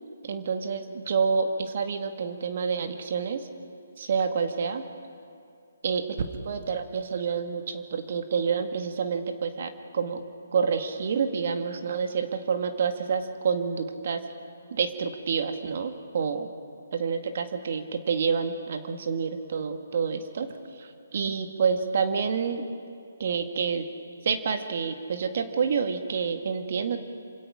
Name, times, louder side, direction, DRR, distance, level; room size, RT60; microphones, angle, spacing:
voice 1, 0.2-3.5 4.0-4.8 5.8-10.2 10.5-14.2 14.7-16.5 16.9-20.5 20.8-22.6 23.2-23.9 24.2-27.0, right 6 dB, 50° right, 7 dB, 1.8 m, -28 dB
27.0 x 26.0 x 5.1 m, 2.4 s
figure-of-eight pair, 135°, 0 cm